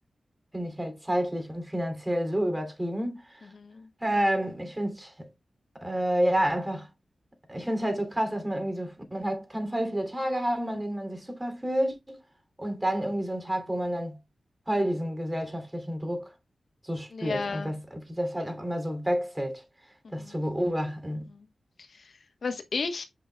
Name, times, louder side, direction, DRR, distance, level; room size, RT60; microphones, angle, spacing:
voice 1, 0.5-3.5 4.0-5.3 5.7-6.9 7.5-12.2 12.6-14.2 14.7-16.3 16.8-19.6 20.1-21.3, equal, 15° right, 2.7 m, -29 dB
voice 2, 3.5-3.9 17.1-17.8 20.0-20.4 21.3-21.5 21.9-22.1 22.4-23.0, left 4 dB, 65° left, 1.0 m, -34 dB
8.2 x 5.5 x 2.2 m
cardioid pair, 65°, 0 cm